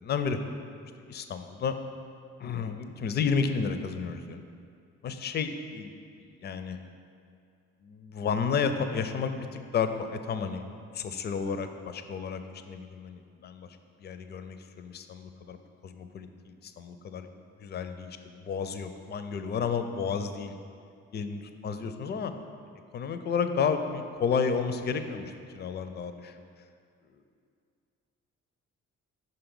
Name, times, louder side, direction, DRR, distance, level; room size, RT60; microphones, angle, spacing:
voice 1, 0.0-0.4 1.1-1.7 2.4-4.4 5.0-6.8 7.8-10.6 10.9-12.4 12.7-13.7 14.0-15.6 15.8-17.3 17.6-20.5 21.1-22.3 22.9-26.4, left 6 dB, 30° left, 9 dB, 0.4 m, -32 dB
5.5 x 3.9 x 5.3 m, 2.4 s
figure-of-eight pair, 40°, 39 cm